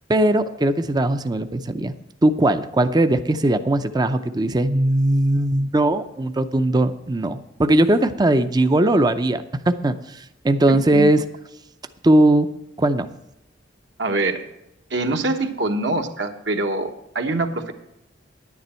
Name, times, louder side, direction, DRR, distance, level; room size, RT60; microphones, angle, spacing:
voice 1, 0.1-1.9 2.2-11.2 12.0-12.5 12.8-13.1, right 1 dB, 20° right, 10 dB, 0.5 m, -19 dB
voice 2, 10.7-11.1 14.0-14.4 14.9-16.9 17.1-17.7, right 2 dB, 65° right, 5 dB, 1.2 m, -24 dB
10.5 x 9.5 x 4.3 m, 0.88 s
head